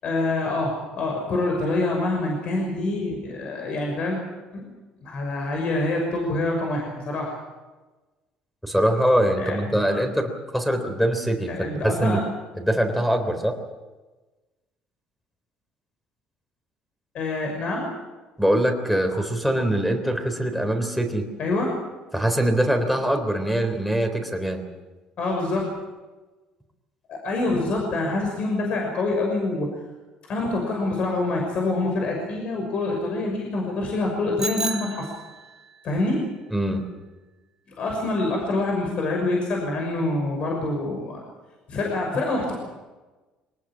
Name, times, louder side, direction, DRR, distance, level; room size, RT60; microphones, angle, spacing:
voice 1, 0.0-4.2 4.5-4.6 5.0-7.3 9.4-9.6 9.9-10.0 11.5-12.2 17.1-17.9 21.4-21.8 25.2-25.7 27.1-29.7 30.3-35.1 35.8-36.2 37.8-41.2 41.7-42.5, left 2 dB, 50° left, 1 dB, 6.0 m, -26 dB
voice 2, 8.6-12.2 12.5-13.6 18.4-21.3 22.1-24.6 36.5-36.8, right 1 dB, ahead, 6 dB, 3.7 m, -23 dB
Bicycle bell, 34.4-35.7, right 2 dB, 20° right, 1.8 m, -31 dB
23.5 x 19.5 x 7.5 m, 1.2 s
cardioid pair, 125°, 2 cm